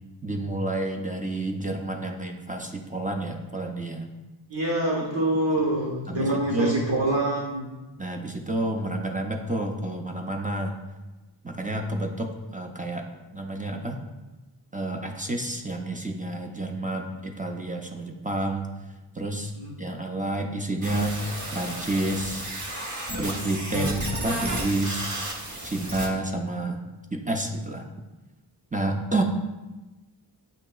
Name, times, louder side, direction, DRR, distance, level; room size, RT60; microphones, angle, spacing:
voice 1, 0.2-4.1 6.1-6.8 8.0-10.7 11.4-13.1 13.3-14.0 14.7-18.7 19.1-19.5 19.8-21.2 21.5-22.5 23.1-25.1 25.6-26.8 27.1-27.9 28.7-29.2, right 2 dB, 20° right, 2 dB, 0.4 m, -29 dB
voice 2, 4.5-7.7 19.5-19.7, right 1 dB, 75° right, -4 dB, 1.2 m, -25 dB
sound 1, 20.8-26.1, right 1 dB, 40° right, 0.9 m, -32 dB
8.1 x 2.8 x 2.3 m, 1.1 s
wide cardioid pair, 55°, 45 cm